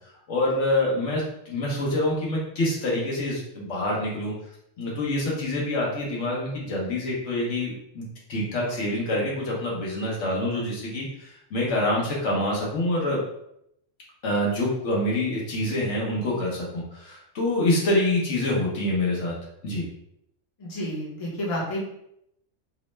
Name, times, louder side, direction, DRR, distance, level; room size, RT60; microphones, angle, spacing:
voice 1, 0.3-4.3 4.8-8.0 8.3-13.2 14.2-19.3 19.6-19.9, left 1 dB, 70° left, -4 dB, 1.1 m, -26 dB
voice 2, 20.6-21.8, equal, 30° left, -5 dB, 0.7 m, -30 dB
2.9 x 2.1 x 3.1 m, 0.77 s
omnidirectional pair, 1.3 m